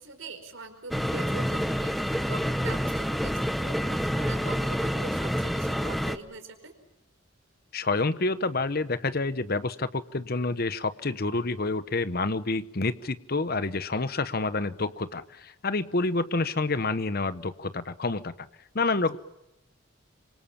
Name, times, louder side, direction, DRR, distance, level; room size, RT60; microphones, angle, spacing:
voice 1, 0.0-6.7, right 3 dB, 75° right, 7 dB, 4.9 m, -43 dB
sound 1, 0.9-6.2, equal, ahead, 1.0 m, -28 dB
voice 2, 7.7-18.3 18.7-19.2, left 3 dB, 50° left, 13 dB, 1.0 m, -28 dB
27.0 x 25.5 x 7.3 m, 0.84 s
head